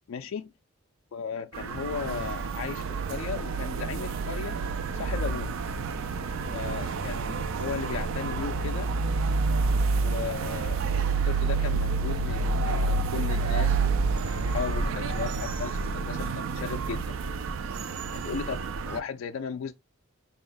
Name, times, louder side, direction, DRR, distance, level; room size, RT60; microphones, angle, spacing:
voice 1, 0.1-0.5 1.1-4.6 4.9-5.6 6.5-8.9 10.0-17.2 18.1-19.7, left 6 dB, 65° left, 0.3 m, -36 dB
sound 1, 1.5-19.0, right 4 dB, 60° right, 0.4 m, -29 dB
4.1 x 2.1 x 3.8 m
head